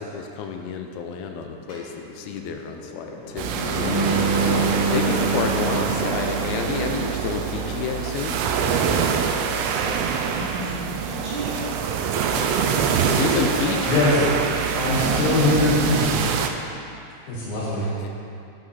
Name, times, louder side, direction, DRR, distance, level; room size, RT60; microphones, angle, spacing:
voice 1, 0.0-3.9 4.5-8.4 13.2-14.4 18.0-18.1, left 6 dB, 85° left, 4 dB, 2.4 m, -30 dB
sound 1, 1.7-7.3, right 3 dB, 45° left, 2.5 m, -27 dB
sound 2, 3.4-16.5, right 6 dB, 90° right, 2.5 m, -25 dB
voice 2, 10.4-11.6 13.2-14.4, right 2 dB, 65° right, -8 dB, 1.9 m, -31 dB
voice 3, 14.7-16.3 17.3-17.9, left 2 dB, 70° left, -6 dB, 2.0 m, -22 dB
10.5 x 5.0 x 4.2 m, 2.6 s
omnidirectional pair, 4.4 m